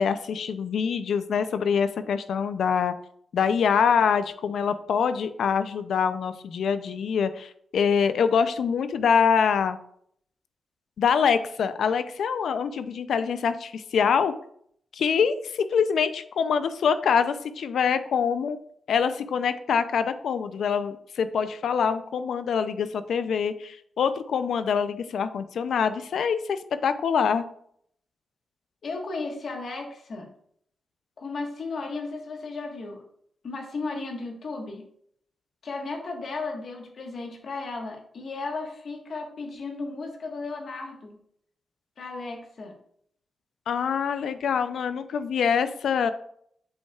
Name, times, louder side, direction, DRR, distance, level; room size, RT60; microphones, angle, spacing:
voice 1, 0.0-2.9 3.3-9.8 11.0-14.3 14.9-18.6 18.9-27.4 43.7-46.1, left 6 dB, 85° left, 12 dB, 0.4 m, -25 dB
voice 2, 28.8-30.3 31.2-33.0 33.4-34.8 35.6-41.2 42.0-42.7, left 3 dB, 60° left, 2 dB, 1.3 m, -35 dB
7.9 x 5.3 x 2.3 m, 0.67 s
wide cardioid pair, 120°, 0 cm